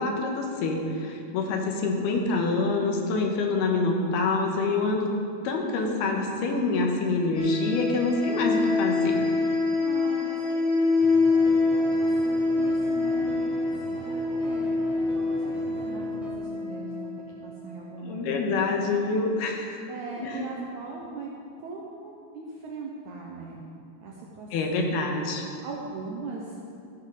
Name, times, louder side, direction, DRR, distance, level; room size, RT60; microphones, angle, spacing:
voice 1, 0.0-5.1 5.4-9.2 18.0-19.8 20.2-20.5 24.5-25.4, left 3 dB, 80° left, 1 dB, 3.1 m, -26 dB
sound 1, 7.3-17.8, left 3 dB, 25° left, 1.5 m, -25 dB
voice 2, 9.7-11.0 11.2-13.7 13.9-14.7 15.1-17.1 17.4-18.5 19.9-21.3 21.6-23.7 24.0-25.0 25.6-26.6, right 4 dB, 70° right, -3 dB, 1.9 m, -40 dB
sound 2, 11.0-16.3, equal, ahead, 1.1 m, -42 dB
15.0 x 10.0 x 3.9 m, 2.5 s
omnidirectional pair, 4.5 m